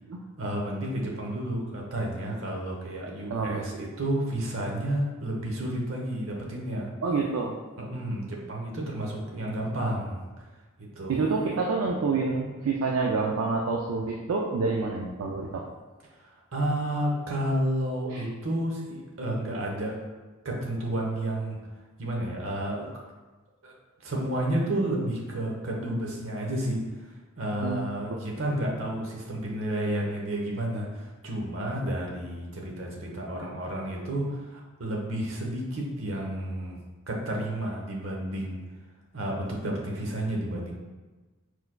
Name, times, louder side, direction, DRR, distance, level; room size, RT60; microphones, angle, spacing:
voice 1, 0.4-6.9 7.9-10.2 10.8-11.2 16.2-20.0 20.4-21.6 22.0-22.9 23.6-23.7 24.0-26.8 27.4-36.8 37.1-38.6 39.1-40.7, right 1 dB, 70° right, -1 dB, 0.9 m, -31 dB
voice 2, 3.3-3.6 7.0-7.5 11.1-15.6 18.1-18.3 27.6-27.8 28.1-28.2, right 4 dB, 85° right, -1 dB, 0.4 m, -27 dB
4.4 x 4.4 x 2.2 m, 1.2 s
head